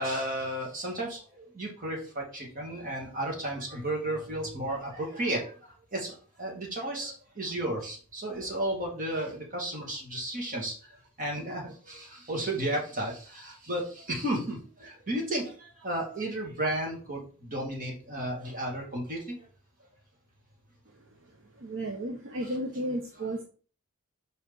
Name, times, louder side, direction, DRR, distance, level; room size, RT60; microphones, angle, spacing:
voice 1, 0.0-19.3, right 1 dB, 40° right, -1 dB, 2.3 m, -33 dB
voice 2, 21.6-23.4, right 1 dB, 60° right, 3 dB, 0.8 m, -33 dB
5.3 x 4.5 x 5.3 m, 0.40 s
head